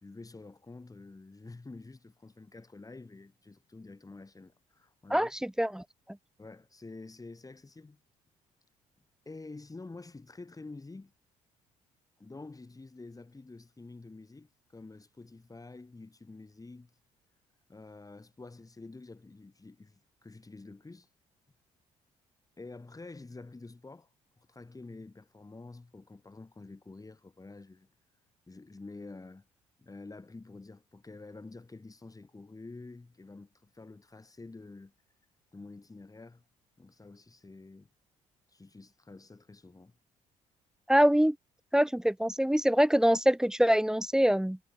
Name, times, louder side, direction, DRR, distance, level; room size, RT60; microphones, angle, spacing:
voice 1, 0.0-5.3 6.4-8.0 9.3-11.1 12.2-16.9 17.7-21.1 22.6-24.1 24.4-27.9 28.5-29.4 29.8-34.9 35.5-36.4 36.8-37.9 38.5-39.9, left 3 dB, 20° left, 4.1 m, -48 dB
voice 2, 5.1-5.8 40.9-41.4 41.7-44.6, equal, 5° right, 0.6 m, -24 dB
hypercardioid pair, 50°, 17 cm